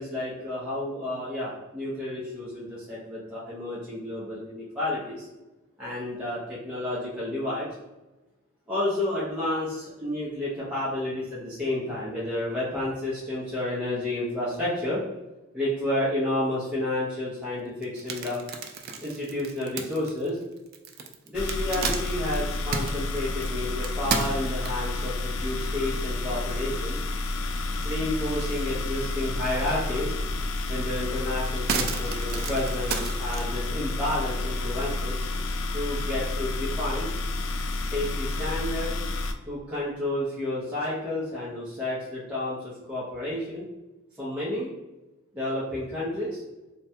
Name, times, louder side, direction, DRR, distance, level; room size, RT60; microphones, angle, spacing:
voice 1, 0.0-5.3 5.8-7.7 8.7-15.0 15.5-18.4 19.0-20.4 21.3-27.0 27.8-30.1 30.7-35.2 35.7-37.1 37.8-39.0 39.5-43.6 44.2-44.7 45.3-46.4, left 1 dB, 5° right, -10 dB, 0.6 m, -31 dB
sound 1, 17.8-25.0 25.6-25.7 26.1-26.2 26.5-27.4 27.7-28.7 29.1-29.2 30.5-30.6 31.0-33.5, right 5 dB, 50° right, 0.3 m, -33 dB
sound 2, 21.3-39.3, left 2 dB, 75° left, 0.3 m, -30 dB
3.3 x 2.2 x 2.8 m, 1.1 s
head